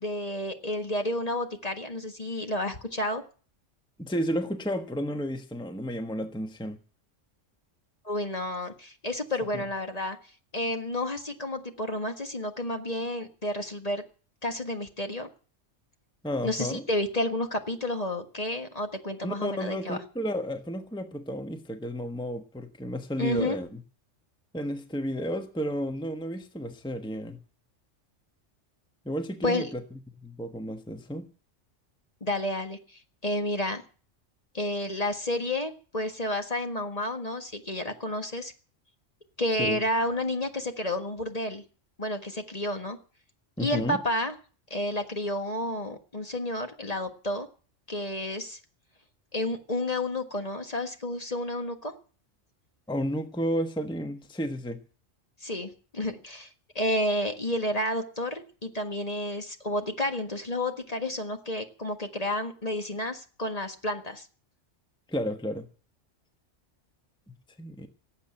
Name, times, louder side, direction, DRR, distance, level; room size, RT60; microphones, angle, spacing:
voice 1, 0.0-3.2 8.0-10.2 10.5-14.0 14.4-15.3 16.4-20.0 23.2-23.6 29.4-29.7 32.2-32.8 33.2-33.8 34.5-38.5 39.4-41.6 42.0-43.0 43.6-44.3 44.7-47.5 47.9-48.6 49.3-51.9 55.4-56.5 56.7-64.3, left 1 dB, 30° left, 1.6 m, -30 dB
voice 2, 4.0-6.8 9.5-9.6 16.2-16.9 19.2-23.8 24.5-27.4 29.0-29.8 30.2-31.3 39.6-39.8 43.6-44.0 52.9-54.8 65.1-65.7 67.6-67.9, equal, 5° left, 1.2 m, -32 dB
18.0 x 8.3 x 8.7 m
omnidirectional pair, 1.3 m